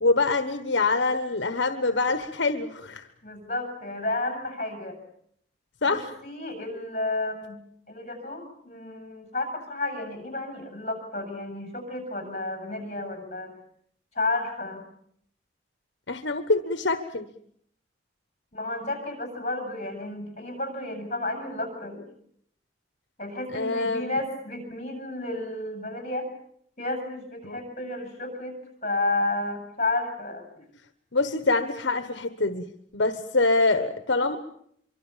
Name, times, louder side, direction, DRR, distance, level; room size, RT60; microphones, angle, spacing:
voice 1, 0.0-3.1 5.8-6.1 16.1-17.3 23.5-24.1 27.4-27.6 31.1-32.7 32.9-34.4, left 3 dB, 75° left, 9 dB, 1.3 m, -25 dB
voice 2, 3.2-5.0 5.9-7.6 7.9-13.5 14.1-14.8 18.5-22.0 23.2-26.3 26.8-28.6 28.8-30.6, left 2 dB, 40° left, 5 dB, 7.6 m, -31 dB
25.0 x 24.5 x 7.3 m, 0.68 s
head